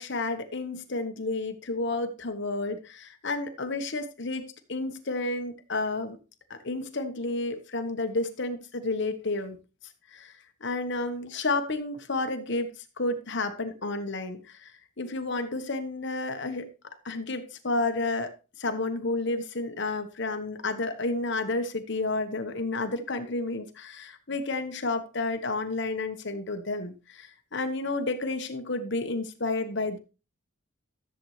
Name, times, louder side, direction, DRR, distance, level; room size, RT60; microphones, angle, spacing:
voice 1, 0.0-4.4 4.7-6.2 6.5-9.6 10.1-10.3 10.6-12.7 13.0-14.7 15.0-16.7 17.0-18.3 18.6-30.0, left 2 dB, 55° left, 7 dB, 1.3 m, -31 dB
13.5 x 7.8 x 3.3 m, 0.32 s
head